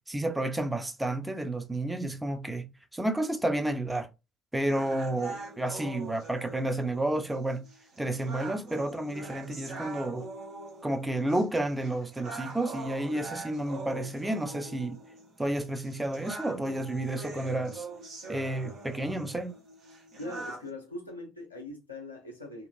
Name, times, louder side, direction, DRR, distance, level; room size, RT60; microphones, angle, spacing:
voice 1, 0.1-2.7 2.9-4.1 4.5-7.6 8.0-10.3 10.8-15.0 15.4-17.9 18.3-19.6, right 1 dB, 10° right, 0.6 m, -31 dB
sound 1, 4.7-20.7, right 3 dB, 60° right, 1.0 m, -43 dB
voice 2, 20.2-22.7, left 2 dB, 90° left, 0.5 m, -41 dB
2.9 x 2.5 x 2.5 m
figure-of-eight pair, 45°, 0 cm